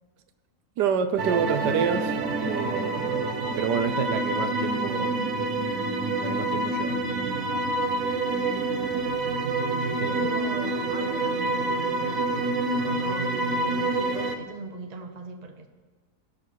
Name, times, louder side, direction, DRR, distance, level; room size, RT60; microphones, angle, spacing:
voice 1, 0.8-3.3 3.6-5.2 6.2-7.0 7.3-7.4 10.0-10.3, right 7 dB, 85° right, 9 dB, 1.3 m, -28 dB
sound 1, 1.2-14.4, right 2 dB, 60° right, 1.3 m, -27 dB
voice 2, 10.1-12.3 12.8-15.7, right 3 dB, 35° right, 5 dB, 0.7 m, -40 dB
18.0 x 6.2 x 4.6 m, 1.4 s
omnidirectional pair, 1.8 m